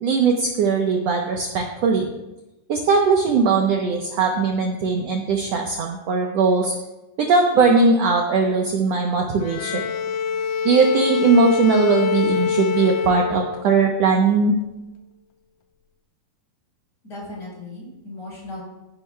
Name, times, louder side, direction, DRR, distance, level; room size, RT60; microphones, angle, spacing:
voice 1, 0.0-2.1 2.7-6.7 7.2-9.8 10.6-14.5, right 4 dB, 80° right, 1 dB, 1.5 m, -19 dB
Bowed string instrument, 9.4-13.8, left 6 dB, 80° left, 2.2 m, -24 dB
voice 2, 17.0-18.6, left 2 dB, 25° left, -4 dB, 4.8 m, -36 dB
15.0 x 10.5 x 2.2 m, 1.0 s
omnidirectional pair, 4.0 m